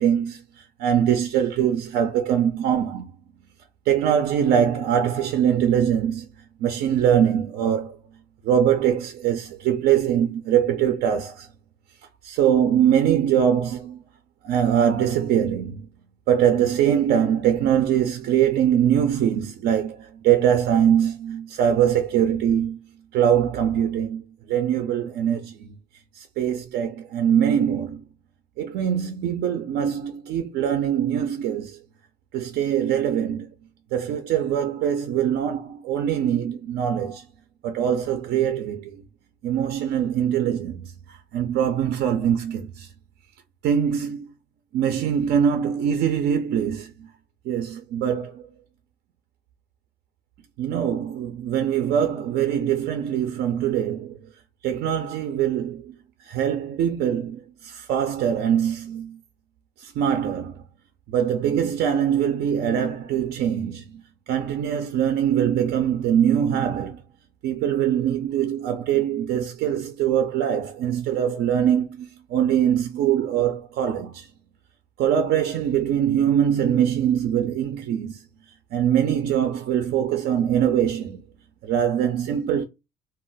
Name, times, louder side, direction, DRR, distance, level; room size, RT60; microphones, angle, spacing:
voice 1, 0.0-3.1 3.9-6.3 6.6-8.0 8.4-11.5 12.2-14.0 14.4-15.8 16.3-22.8 23.1-24.2 24.5-25.7 26.1-28.0 28.6-31.8 32.3-33.5 33.9-37.2 37.6-39.0 39.4-42.9 43.6-44.3 44.7-47.1 47.5-48.4 50.6-54.2 54.6-55.9 56.2-59.2 59.8-60.6 61.1-64.0 64.3-67.0 67.4-74.3 75.0-78.2 78.7-81.2 81.6-82.6, right 9 dB, 70° right, 0.4 m, -23 dB
2.2 x 2.0 x 3.8 m
cardioid pair, 110°, 17 cm